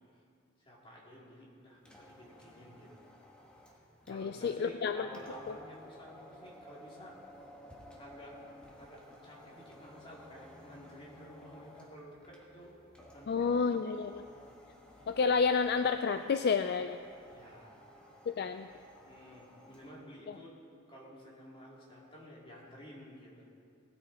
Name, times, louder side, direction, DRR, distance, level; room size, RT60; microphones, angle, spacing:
voice 1, 0.6-3.0 4.1-7.2 8.0-8.4 8.8-12.7 13.1-13.6 14.1-14.3 17.2-17.8 19.0-20.5 20.9-23.5, equal, 25° left, -5 dB, 3.0 m, -52 dB
sound 1, 1.7-20.0, left 1 dB, 5° left, 1.6 m, -55 dB
voice 2, 4.1-5.1 13.3-14.2 15.1-17.0 18.3-18.7, left 5 dB, 50° left, 9 dB, 0.4 m, -30 dB
19.0 x 9.5 x 4.3 m, 2.3 s
head